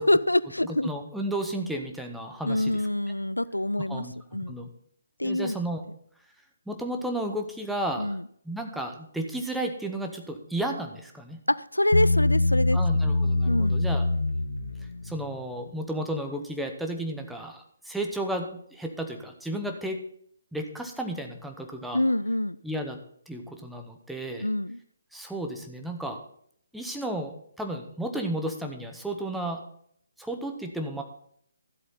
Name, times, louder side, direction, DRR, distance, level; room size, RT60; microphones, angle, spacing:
voice 1, 0.0-0.9 2.4-4.1 4.3-4.5 5.2-5.6 8.0-8.2 11.5-12.8 13.5-13.8 21.9-22.6 24.4-24.8, left 1 dB, 80° left, 18 dB, 0.3 m, -25 dB
voice 2, 0.6-2.8 3.9-4.7 5.2-5.8 6.7-8.2 8.4-11.4 12.7-14.1 14.8-20.0 20.5-22.0 22.6-23.0 23.3-24.5 25.1-26.2 26.7-29.6 30.2-31.0, right 1 dB, ahead, 3 dB, 0.9 m, -33 dB
Bass guitar, 11.9-15.3, left 2 dB, 65° left, 0.9 m, -24 dB
13.0 x 7.8 x 4.0 m, 0.64 s
figure-of-eight pair, 140°, 0 cm